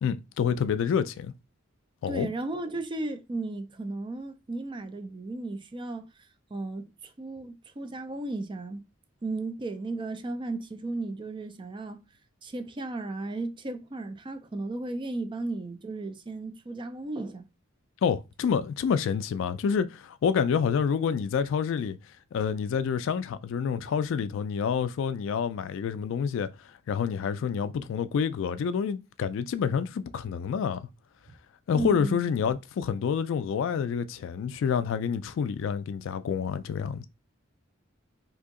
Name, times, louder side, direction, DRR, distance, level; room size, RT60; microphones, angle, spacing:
voice 1, 0.0-1.3 2.0-2.3 18.0-22.0 22.3-30.9 31.7-37.0, left 7 dB, 65° left, 0.3 m, -28 dB
voice 2, 2.1-8.8 9.2-12.0 12.4-17.4 31.7-32.2, right 2 dB, 25° right, 0.4 m, -35 dB
2.8 x 2.7 x 3.6 m
head